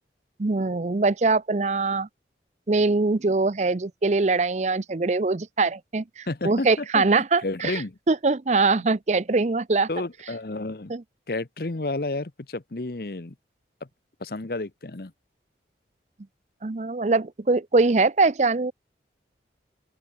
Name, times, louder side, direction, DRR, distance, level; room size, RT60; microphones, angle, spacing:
voice 1, 0.4-2.1 2.7-9.9 10.9-11.0 16.6-18.7, right 3 dB, 40° right, 0.6 m, -22 dB
voice 2, 6.3-7.1 7.4-8.0 9.9-10.9 11.3-13.3 14.2-15.1, left 2 dB, 55° left, 0.9 m, -31 dB
open air
head